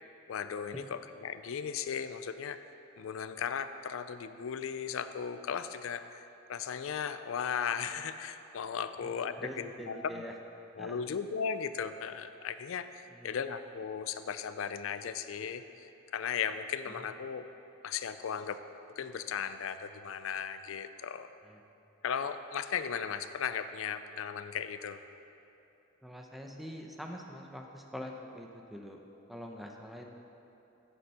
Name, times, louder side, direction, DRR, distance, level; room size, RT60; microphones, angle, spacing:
voice 1, 0.3-2.6 3.0-10.0 10.8-17.4 17.8-18.6 19.0-21.3 22.0-25.0, left 7 dB, 65° left, 11 dB, 0.4 m, -36 dB
voice 2, 9.0-10.3 10.8-11.0 13.1-13.4 16.9-17.0 21.4-21.6 26.0-29.0 29.3-30.0, equal, ahead, 1 dB, 0.7 m, -44 dB
9.6 x 7.0 x 6.7 m, 2.9 s
head